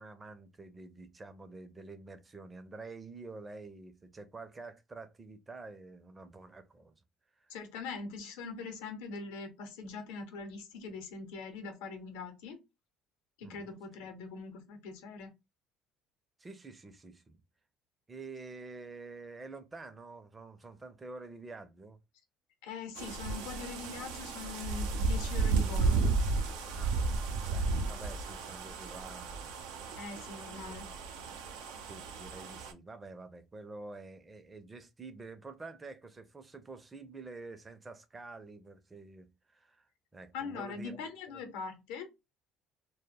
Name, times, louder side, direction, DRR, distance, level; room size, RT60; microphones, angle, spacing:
voice 1, 0.0-6.9 7.4-7.5 13.4-13.8 16.4-17.4 18.1-22.0 26.7-27.1 27.5-29.9 30.4-31.1 31.8-41.1 41.3-41.4, right 3 dB, 25° right, 0.5 m, -48 dB
voice 2, 7.5-12.6 13.4-15.3 22.6-26.1 29.9-30.9 40.3-42.1, left 5 dB, 85° left, 0.7 m, -42 dB
sound 1, 23.0-32.7, right 4 dB, 90° right, 0.4 m, -33 dB
2.2 x 2.0 x 3.3 m
supercardioid pair, 95°, 0 cm